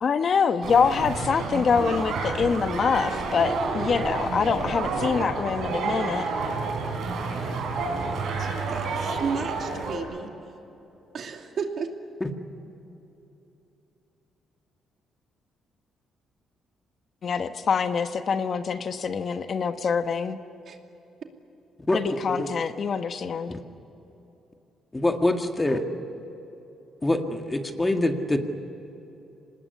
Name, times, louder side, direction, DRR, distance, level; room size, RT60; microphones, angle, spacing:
voice 1, 0.0-6.3 17.2-20.4 21.9-23.5, left 6 dB, 50° left, 9 dB, 1.2 m, -25 dB
sound 1, 0.6-10.0, right 4 dB, 75° right, 4.5 m, -29 dB
voice 2, 8.4-10.3 11.1-11.9 20.7-20.8, right 5 dB, 55° right, 4 dB, 2.6 m, -33 dB
voice 3, 21.9-22.5 23.5-23.6 24.9-25.8 27.0-28.4, left 1 dB, 15° left, 5 dB, 2.0 m, -25 dB
25.5 x 19.5 x 9.8 m, 3.0 s
cardioid pair, 90°, 0 cm